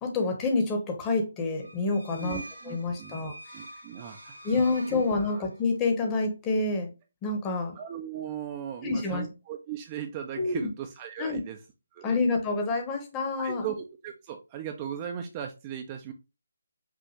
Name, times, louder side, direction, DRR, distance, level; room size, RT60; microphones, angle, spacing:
voice 1, 0.0-2.4 2.7-3.3 4.4-6.9 7.2-7.8 8.8-9.2 10.4-10.7 11.2-11.4 12.0-13.6, left 3 dB, 15° left, 3 dB, 0.8 m, -27 dB
sound 1, 1.6-5.7, right 2 dB, 70° right, 1.2 m, -46 dB
voice 2, 2.1-3.2 3.5-4.5 4.9-5.4 7.7-11.6 11.9-12.2 13.4-16.1, right 9 dB, 20° right, 5 dB, 0.3 m, -38 dB
5.4 x 2.5 x 2.9 m, 0.28 s
figure-of-eight pair, 145°, 0 cm